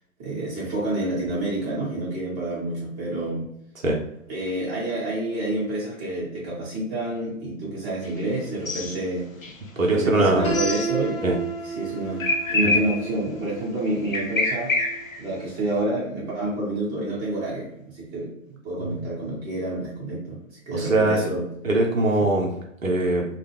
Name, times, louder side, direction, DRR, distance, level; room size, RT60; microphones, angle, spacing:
voice 1, 0.2-3.5 4.3-9.3 9.9-11.2 11.6-14.7 15.2-18.3 18.6-21.5, right 1 dB, 20° right, -6 dB, 1.1 m, -28 dB
sound 1, 8.0-8.2 8.5-9.0 9.4-9.5 10.5-10.9 12.2-13.2 14.1-15.3, left 2 dB, 80° left, 0.6 m, -26 dB
voice 2, 9.8-10.5 11.2-11.3 12.6-12.8 20.7-21.2 21.6-22.5 22.8-23.2, right 2 dB, 80° right, -1 dB, 0.8 m, -21 dB
Piano, 10.4-16.3, right 5 dB, 25° left, 0.6 m, -33 dB
2.4 x 2.2 x 3.2 m, 0.76 s
figure-of-eight pair, 125°, 39 cm